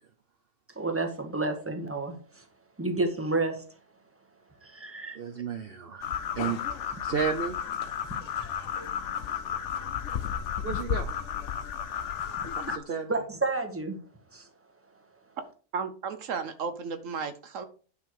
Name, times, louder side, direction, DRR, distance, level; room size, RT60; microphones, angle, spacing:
voice 1, 0.7-2.4 2.8-3.6 4.6-5.2 13.1-14.0 14.3-14.5, right 3 dB, 10° right, 5 dB, 1.5 m, -30 dB
voice 2, 5.1-6.6 7.0-7.6 10.6-11.1 12.5-13.2, right 6 dB, 50° right, 4 dB, 1.0 m, -32 dB
sound 1, 6.0-12.8, left 8 dB, 65° left, 1.0 m, -33 dB
voice 3, 15.7-17.6, right 5 dB, 70° right, 9 dB, 1.2 m, -34 dB
9.6 x 5.7 x 4.7 m, 0.40 s
omnidirectional pair, 1.4 m